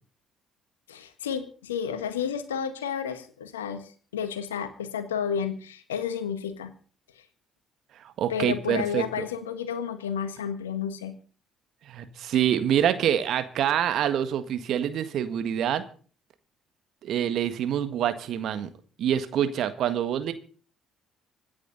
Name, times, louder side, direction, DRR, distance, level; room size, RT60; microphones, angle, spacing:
voice 1, 0.9-6.7 8.3-11.1, left 7 dB, 85° left, 10 dB, 1.6 m, -31 dB
voice 2, 8.2-9.2 11.9-15.8 17.0-18.7 19.0-20.3, right 10 dB, 60° right, 11 dB, 1.7 m, -26 dB
26.0 x 9.6 x 4.1 m, 0.42 s
hypercardioid pair, 50°, 0 cm